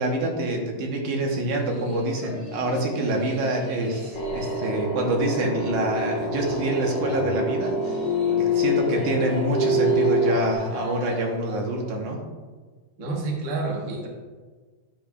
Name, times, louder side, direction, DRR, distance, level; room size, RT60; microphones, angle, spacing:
voice 1, 0.0-8.0 8.3-12.2, right 2 dB, 75° right, 0 dB, 2.6 m, -26 dB
sound 1, 1.6-11.5, equal, 20° right, 2.7 m, -39 dB
sound 2, 4.1-10.5, left 1 dB, 70° left, 1.6 m, -25 dB
voice 2, 13.0-14.1, right 3 dB, 40° right, -2 dB, 1.2 m, -29 dB
11.0 x 9.1 x 2.4 m, 1.4 s
omnidirectional pair, 3.6 m